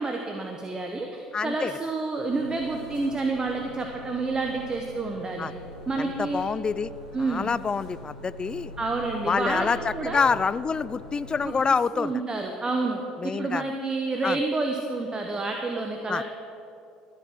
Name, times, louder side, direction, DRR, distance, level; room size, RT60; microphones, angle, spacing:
voice 1, 0.0-5.5 5.9-6.5 7.1-7.5 8.8-10.3 11.4-11.5 11.9-16.2, right 3 dB, 25° right, 2 dB, 1.1 m, -29 dB
voice 2, 1.3-1.7 5.4-5.5 6.0-6.9 7.2-8.7 9.3-12.2 13.2-13.7 14.2-14.4 16.1-16.2, left 5 dB, 25° left, 18 dB, 0.3 m, -27 dB
sound 1, 2.2-11.4, equal, 90° left, 3.4 m, -43 dB
13.5 x 7.4 x 6.0 m, 2.5 s
hypercardioid pair, 65°, 3 cm